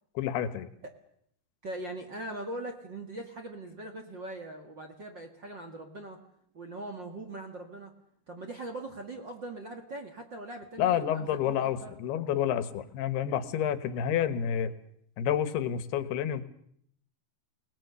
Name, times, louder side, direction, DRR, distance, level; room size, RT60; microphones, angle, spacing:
voice 1, 0.2-0.7 10.8-14.7 15.2-16.4, left 9 dB, 85° left, 12 dB, 3.2 m, -29 dB
voice 2, 1.6-6.2 6.5-7.9 8.3-11.9, right 2 dB, 40° right, 4 dB, 1.8 m, -41 dB
29.5 x 19.5 x 6.9 m, 0.69 s
omnidirectional pair, 4.5 m